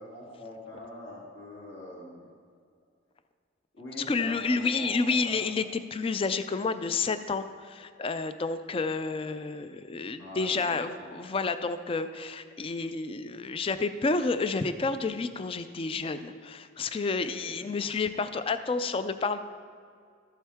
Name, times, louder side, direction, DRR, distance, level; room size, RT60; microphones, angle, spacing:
voice 1, 0.0-2.2 3.7-5.4 10.2-11.2 17.0-18.2, left 1 dB, 65° left, -6 dB, 2.6 m, -44 dB
voice 2, 4.1-19.5, left 4 dB, 25° left, 11 dB, 0.3 m, -30 dB
13.5 x 7.3 x 3.5 m, 2.1 s
head